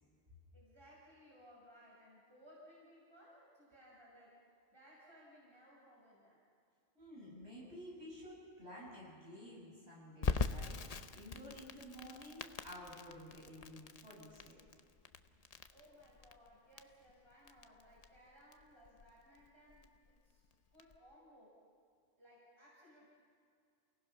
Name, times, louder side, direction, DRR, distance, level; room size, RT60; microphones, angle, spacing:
voice 1, 0.5-4.4 4.7-6.4 15.7-20.4 20.7-21.6 22.2-23.1, equal, 20° right, -6 dB, 6.2 m, -62 dB
voice 2, 6.9-14.6, equal, 55° right, -6 dB, 8.3 m, -52 dB
Crackle, 10.2-21.0, left 5 dB, 40° left, 0.7 m, -43 dB
29.0 x 18.0 x 5.8 m, 2.2 s
omnidirectional pair, 1.3 m